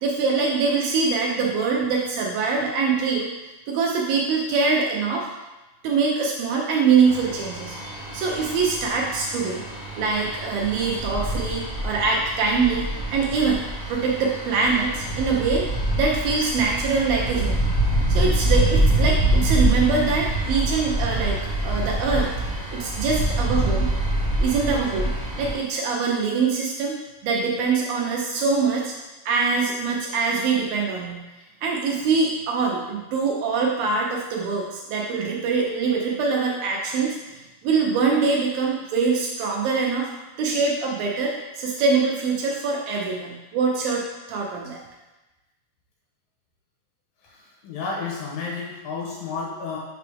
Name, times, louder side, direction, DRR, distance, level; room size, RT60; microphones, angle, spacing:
voice 1, 0.0-3.3 3.7-5.3 5.8-9.6 10.0-15.7 16.0-17.7 18.1-21.4 21.6-22.3 22.7-23.9 24.4-25.1 25.4-27.0 27.2-29.0 29.3-31.2 31.6-40.1 40.4-44.0 44.3-44.8, right 4 dB, 75° right, -2 dB, 2.3 m, -23 dB
sound 1, 7.0-25.5, right 1 dB, 35° left, 1.0 m, -25 dB
voice 2, 47.2-49.8, left 4 dB, 70° left, -2 dB, 2.5 m, -32 dB
6.8 x 5.7 x 3.4 m, 1.1 s
omnidirectional pair, 4.6 m